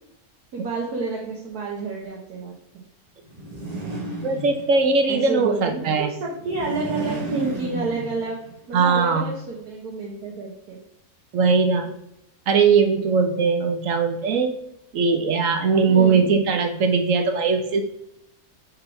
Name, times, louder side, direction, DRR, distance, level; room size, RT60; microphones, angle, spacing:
voice 1, 0.5-2.5 5.1-10.8 15.9-16.2, right 3 dB, 90° right, -3 dB, 1.7 m, -30 dB
sound 1, 3.3-5.0 6.3-8.5, right 1 dB, 25° right, 1.3 m, -33 dB
voice 2, 4.2-6.1 8.7-9.2 11.3-11.9 12.5-14.5 14.9-17.8, right 5 dB, 65° right, 5 dB, 1.1 m, -20 dB
5.4 x 4.0 x 5.7 m, 0.81 s
omnidirectional pair, 1.6 m